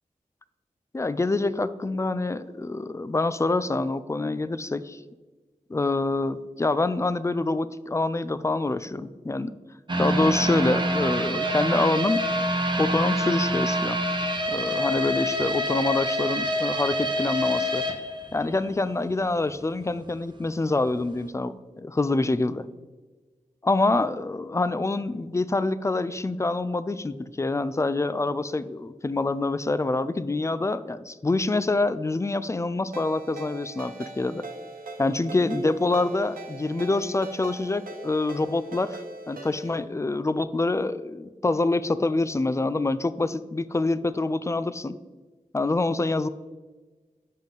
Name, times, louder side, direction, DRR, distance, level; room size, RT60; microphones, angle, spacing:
voice 1, 0.9-5.0 5.7-9.5 10.0-12.2 12.8-14.0 14.5-17.8 18.3-22.7 23.6-34.4 35.0-39.0 39.3-45.0 45.5-46.3, left 2 dB, 20° left, 15 dB, 0.3 m, -26 dB
sound 1, 9.9-18.9 19.2-19.3 19.8-19.9, equal, 35° right, 0.8 m, -26 dB
Ringtone, 32.9-39.8, right 3 dB, 85° right, 0.9 m, -41 dB
7.3 x 5.4 x 3.8 m, 1.3 s
wide cardioid pair, 55°, 14 cm